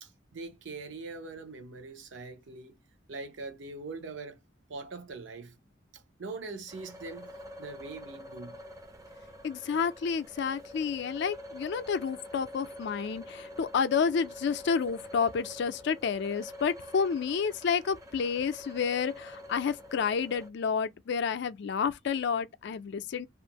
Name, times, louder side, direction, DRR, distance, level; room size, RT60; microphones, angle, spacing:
voice 1, 0.0-2.8 3.1-4.4 4.7-5.6 5.9-8.6, right 3 dB, 80° right, 0.7 m, -42 dB
sound 1, 6.7-20.5, left 1 dB, 20° right, 0.4 m, -46 dB
voice 2, 9.4-23.3, left 6 dB, 65° left, 0.4 m, -30 dB
2.6 x 2.4 x 2.8 m
head